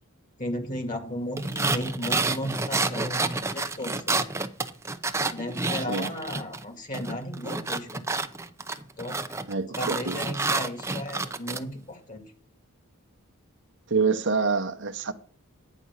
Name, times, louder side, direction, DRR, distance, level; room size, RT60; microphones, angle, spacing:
voice 1, 0.4-4.3 5.3-8.0 9.0-9.2 9.8-12.2, equal, 40° left, 2.2 m, -34 dB
sound 1, 1.4-6.6 6.9-11.6, right 3 dB, 15° right, 0.7 m, -29 dB
voice 2, 9.5-10.3 13.9-15.1, right 4 dB, 60° right, 0.9 m, -26 dB
10.0 x 5.3 x 8.1 m
head